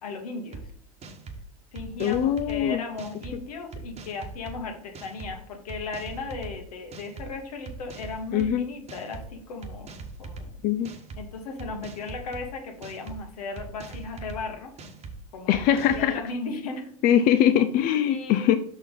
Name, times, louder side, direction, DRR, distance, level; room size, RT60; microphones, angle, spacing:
voice 1, 0.0-0.6 1.7-9.9 10.2-10.6 11.2-14.7 15.3-15.6 15.9-16.9 18.1-18.6, left 3 dB, 85° left, 3 dB, 1.6 m, -36 dB
sound 1, 0.5-0.6 1.0-1.4 1.8-2.6 3.0-3.3 3.7-4.6 4.9-5.3 5.7-6.5 6.9-7.3 7.7-8.5 8.9-9.3 9.6-10.5 10.8-11.2 11.6-12.4 12.8-13.2 13.6-14.4 14.8-15.1 15.5-16.1, right 4 dB, 35° right, 1.2 m, -40 dB
voice 2, 2.0-2.8 8.3-8.7 10.6-10.9 15.5-16.2 17.0-18.5, left 10 dB, 50° left, 9 dB, 0.5 m, -22 dB
5.6 x 4.5 x 5.4 m, 0.64 s
hypercardioid pair, 85°, 19 cm